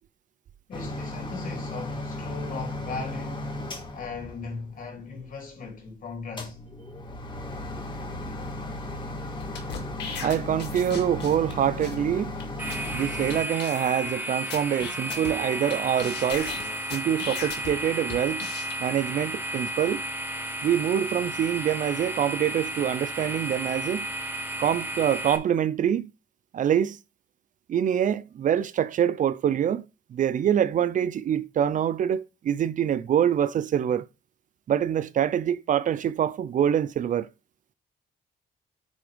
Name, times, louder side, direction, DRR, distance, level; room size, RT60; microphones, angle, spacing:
voice 1, 0.7-3.5 3.9-6.6, left 4 dB, 55° left, 3.1 m, -38 dB
sound 1, 0.7-5.0 6.3-13.4, left 1 dB, 30° left, 1.5 m, -35 dB
sound 2, 9.4-11.5 11.8-12.0 12.4-12.5 12.7-12.9 13.3-13.4 13.6-14.1 14.5-15.7 16.0-17.7 18.1-18.7, left 6 dB, 85° left, 1.9 m, -37 dB
voice 2, 10.2-12.3 12.9-16.5 16.9-18.5 18.8-20.0 20.6-24.1 24.6-26.1 26.5-27.0 27.7-29.8 30.1-34.1 34.7-37.3, right 9 dB, 50° right, 0.4 m, -25 dB
sound 3, 12.6-25.4, right 1 dB, 10° right, 1.1 m, -33 dB
8.6 x 3.4 x 5.0 m
cardioid pair, 135°, 17 cm